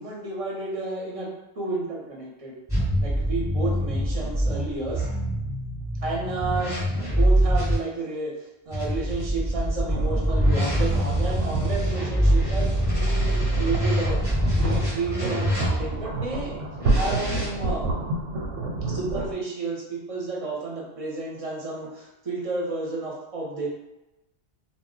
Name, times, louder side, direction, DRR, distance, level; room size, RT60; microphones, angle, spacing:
voice 1, 0.0-2.6 3.0-5.1 6.0-8.3 8.7-14.2 14.5-16.5 16.9-17.9 18.9-23.7, right 3 dB, 40° right, -3 dB, 0.5 m, -31 dB
sound 1, 2.7-7.8 8.7-16.1 16.8-17.5, equal, 5° right, 0.8 m, -24 dB
sound 2, 9.9-19.3, right 2 dB, 90° right, 0.9 m, -30 dB
2.1 x 2.0 x 3.7 m, 0.94 s
omnidirectional pair, 1.2 m